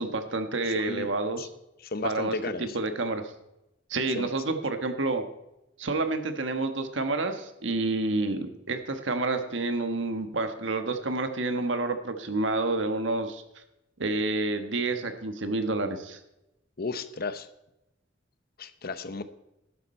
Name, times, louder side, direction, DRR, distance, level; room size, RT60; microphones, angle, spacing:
voice 1, 0.0-1.5 2.0-3.2 3.9-5.2 5.8-13.4 14.0-16.2, right 2 dB, 75° right, 8 dB, 1.4 m, -29 dB
voice 2, 0.6-1.1 1.4-1.5 1.8-2.8 4.1-4.3 16.8-17.5 18.6-19.2, left 3 dB, 55° left, 12 dB, 0.8 m, -34 dB
12.0 x 11.0 x 4.4 m, 0.89 s
head